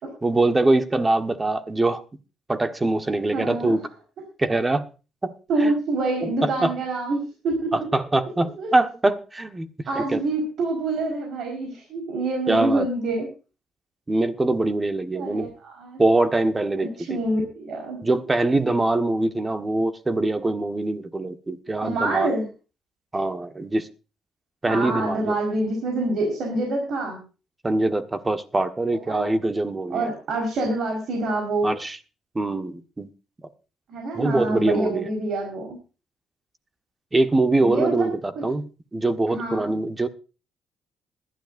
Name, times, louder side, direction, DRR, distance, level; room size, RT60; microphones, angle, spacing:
voice 1, 0.2-2.0 2.5-3.8 4.4-4.9 5.2-5.3 5.6-5.7 6.4-6.7 7.7-9.7 9.9-10.2 12.5-12.9 14.1-15.5 16.0-17.2 18.0-22.3 23.1-23.9 24.6-25.4 27.6-30.1 31.6-32.0 32.3-33.1 34.1-35.1 37.1-40.1, right 2 dB, 20° right, 1.4 m, -23 dB
voice 2, 3.3-3.8 5.5-7.8 8.6-8.7 9.9-13.3 15.1-16.0 16.8-18.0 21.8-22.5 24.7-27.2 29.1-29.3 29.9-31.7 33.9-35.8 37.6-38.1 38.3-38.4 39.3-39.7, right 2 dB, 70° right, 4.6 m, -26 dB
20.5 x 12.0 x 2.6 m
cardioid pair, 90°, 0 cm